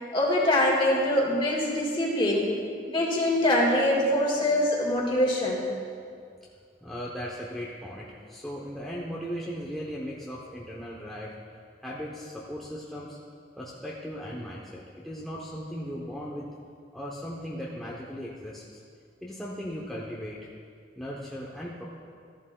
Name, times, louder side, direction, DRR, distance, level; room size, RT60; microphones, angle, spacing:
voice 1, 0.1-2.5 2.9-5.6, left 1 dB, 30° left, -2 dB, 1.8 m, -24 dB
voice 2, 6.8-11.4 11.8-13.2 13.6-16.5 16.9-18.8 19.2-20.4 20.9-21.8, equal, ahead, -6 dB, 0.7 m, -37 dB
14.5 x 11.0 x 2.2 m, 2.3 s
head